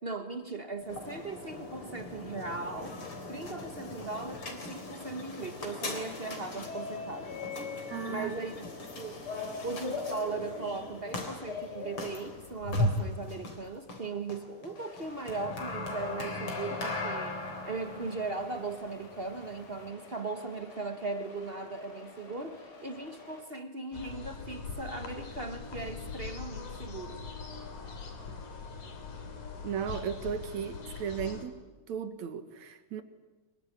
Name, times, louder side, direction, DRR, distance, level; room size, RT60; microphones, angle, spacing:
voice 1, 0.0-3.0 3.3-7.3 8.1-8.7 9.0-9.2 9.6-17.4 17.6-27.2, right 3 dB, 45° right, 7 dB, 0.7 m, -38 dB
sound 1, 0.8-19.9, left 2 dB, 45° left, 4.4 m, -38 dB
voice 2, 7.9-8.4 29.6-33.0, right 8 dB, 70° right, 9 dB, 2.9 m, -36 dB
sound 2, 14.8-23.4, left 3 dB, 60° left, 5.4 m, -51 dB
sound 3, 23.9-31.5, left 5 dB, 90° left, 4.4 m, -42 dB
24.0 x 23.0 x 10.0 m, 1.2 s
omnidirectional pair, 3.4 m